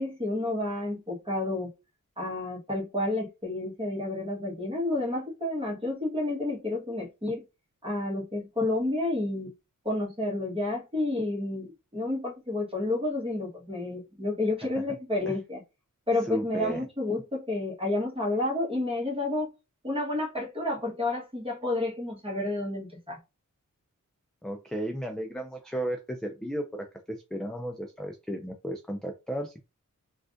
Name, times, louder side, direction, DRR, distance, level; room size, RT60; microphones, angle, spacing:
voice 1, 0.0-1.7 2.2-7.4 7.8-9.5 9.8-15.6 16.1-19.5 19.8-23.2, left 2 dB, 15° right, 1.3 m, -30 dB
voice 2, 16.2-16.9 24.4-29.6, right 1 dB, ahead, 0.3 m, -34 dB
3.3 x 2.5 x 2.5 m
wide cardioid pair, 85°, 33 cm